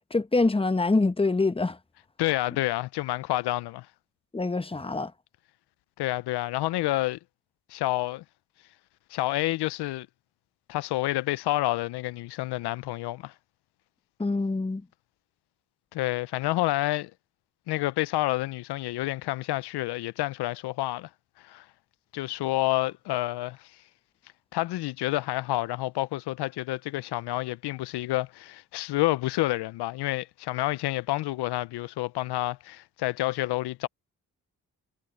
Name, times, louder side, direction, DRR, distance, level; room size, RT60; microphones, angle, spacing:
voice 1, 0.1-1.8 4.3-5.1 14.2-14.8, left 3 dB, 15° left, 1.0 m, -25 dB
voice 2, 2.2-3.9 6.0-7.2 7.7-8.2 9.1-10.1 10.7-13.3 15.9-17.1 17.7-21.1 21.4-21.7 22.1-23.7 24.5-33.9, left 17 dB, 80° left, 0.6 m, -29 dB
supercardioid pair, 45°, 39 cm